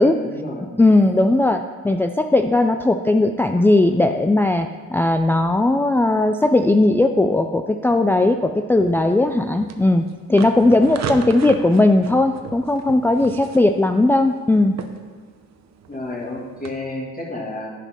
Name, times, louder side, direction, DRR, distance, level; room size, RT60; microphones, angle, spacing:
voice 1, 0.0-1.2 10.3-10.7 15.9-17.7, left 2 dB, 30° left, -3 dB, 2.3 m, -32 dB
voice 2, 0.8-10.0 10.3-14.7, left 2 dB, 5° left, 6 dB, 0.4 m, -17 dB
sound 1, 8.8-16.7, right 6 dB, 60° right, 0.9 m, -37 dB
10.5 x 5.1 x 5.4 m, 1.5 s
cardioid pair, 90°, 30 cm